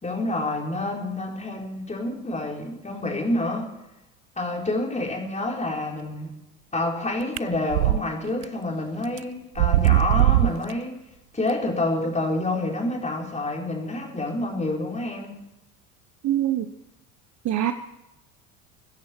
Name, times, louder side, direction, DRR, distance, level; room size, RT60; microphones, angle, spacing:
voice 1, 0.0-3.7 4.4-6.4 6.7-11.0 11.3-15.4, left 2 dB, 15° left, 0 dB, 4.3 m, -28 dB
sound 1, 7.4-8.0 8.4-8.5 9.2-9.3 9.6-10.7, right 17 dB, 70° right, 0.6 m, -19 dB
voice 2, 16.2-16.7 17.4-17.7, right 12 dB, 40° right, 9 dB, 1.2 m, -23 dB
23.0 x 10.5 x 4.6 m, 0.91 s
hypercardioid pair, 70°, 44 cm